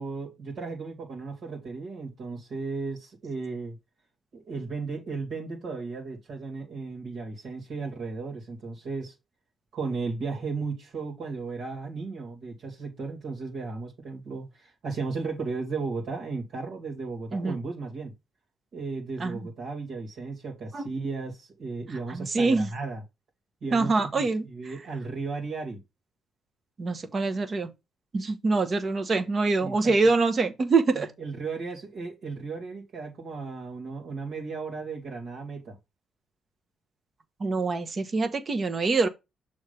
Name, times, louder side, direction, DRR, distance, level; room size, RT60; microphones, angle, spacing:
voice 1, 0.0-3.8 4.3-9.1 9.7-18.1 18.7-23.0 23.6-25.8 29.6-30.1 30.9-35.8, right 4 dB, 65° right, 2.6 m, -35 dB
voice 2, 22.1-22.7 23.7-24.4 26.8-27.7 28.1-31.1 37.4-39.1, right 3 dB, 40° right, 1.3 m, -25 dB
6.5 x 3.5 x 5.2 m
cardioid pair, 90°, 0 cm